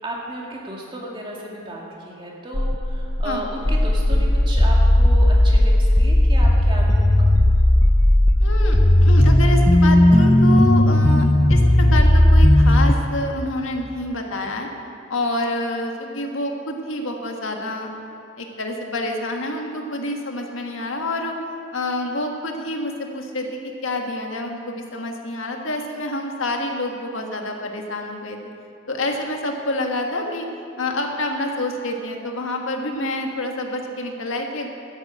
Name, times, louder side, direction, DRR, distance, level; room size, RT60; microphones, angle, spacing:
voice 1, 0.0-7.3, right 1 dB, 25° right, -3 dB, 2.2 m, -33 dB
sound 1, 2.5-12.9, left 1 dB, 15° left, 0.4 m, -15 dB
voice 2, 8.4-14.7 15.1-17.9 18.4-21.3 21.7-23.5 23.8-28.4 28.9-30.5 30.8-34.7, left 1 dB, 70° left, 2 dB, 1.7 m, -27 dB
13.0 x 8.9 x 8.6 m, 2.5 s
head